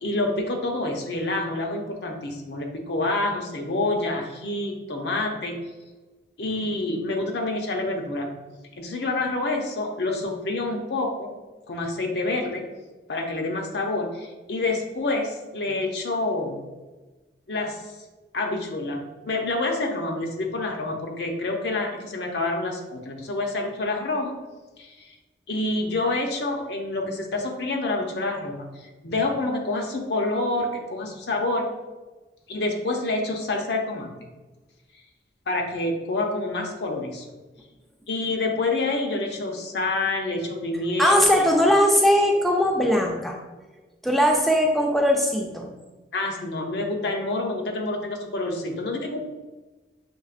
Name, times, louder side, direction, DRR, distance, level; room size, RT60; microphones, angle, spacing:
voice 1, 0.0-5.6 6.4-8.3 8.8-11.3 11.7-12.6 13.1-16.6 17.5-17.8 18.3-24.4 24.8-25.1 25.5-31.7 32.5-34.1 35.5-37.2 38.1-41.2 46.1-49.2, left 2 dB, 75° left, 2 dB, 0.7 m, -27 dB
voice 2, 41.0-43.4 44.0-45.7, equal, ahead, 0 dB, 0.4 m, -20 dB
6.2 x 2.8 x 2.5 m, 1.2 s
head